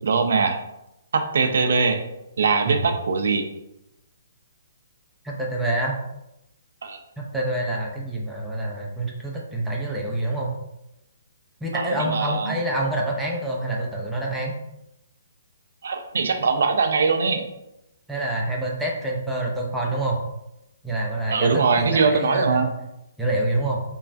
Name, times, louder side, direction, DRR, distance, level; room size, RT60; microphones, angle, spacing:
voice 1, 0.0-0.6 1.1-2.0 2.4-3.4 6.8-7.0 11.7-12.6 15.8-17.5 21.3-22.7, right 4 dB, 70° right, 6 dB, 0.3 m, -22 dB
voice 2, 5.2-6.0 7.2-10.6 11.6-14.6 18.1-20.2 20.8-22.7 23.2-23.8, right 1 dB, ahead, -3 dB, 0.4 m, -26 dB
3.0 x 2.3 x 2.5 m, 0.88 s
hypercardioid pair, 155°, 0 cm